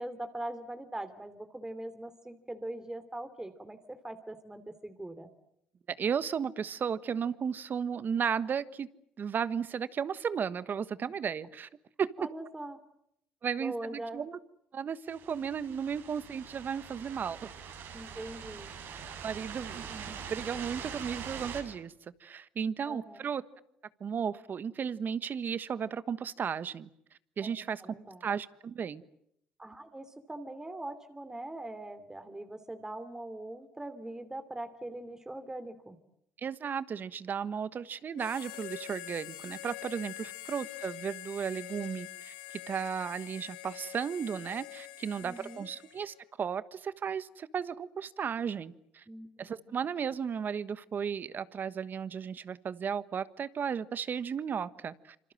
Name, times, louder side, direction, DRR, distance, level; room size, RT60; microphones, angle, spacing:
voice 1, 0.0-5.3 12.2-12.8 13.6-14.2 17.9-18.7 22.9-23.2 27.8-28.2 29.6-36.0 45.2-45.7 49.1-49.8, right 1 dB, 15° right, 9 dB, 2.9 m, -42 dB
voice 2, 5.9-8.9 9.2-11.7 12.0-12.3 13.4-14.3 14.7-17.5 19.2-21.9 22.2-23.4 24.0-26.9 27.4-27.8 28.2-29.0 36.4-49.0 49.4-55.3, right 7 dB, 50° right, 15 dB, 1.4 m, -34 dB
sound 1, 15.1-21.6, right 7 dB, 70° right, 7.0 m, -43 dB
Harmonica, 38.2-46.2, left 16 dB, 90° left, 1.7 m, -45 dB
27.0 x 26.0 x 7.7 m, 0.76 s
hypercardioid pair, 60°, 4 cm